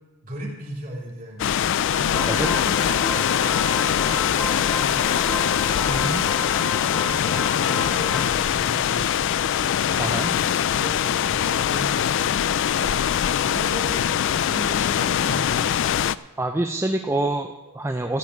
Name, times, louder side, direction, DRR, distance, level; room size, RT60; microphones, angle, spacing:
voice 1, 0.2-1.5 1.8-3.1 3.5-5.2 5.7-9.3 9.8-12.3 12.8-13.1 13.4-15.9, equal, 40° right, -3 dB, 2.9 m, -37 dB
sound 1, 1.4-16.2, left 9 dB, 55° left, 0.3 m, -22 dB
sound 2, 2.1-8.4, left 2 dB, 5° left, 1.1 m, -32 dB
voice 2, 5.9-6.2 10.0-10.3 16.4-18.2, right 1 dB, 10° right, 4 dB, 0.5 m, -26 dB
15.0 x 5.3 x 9.2 m, 1.2 s
head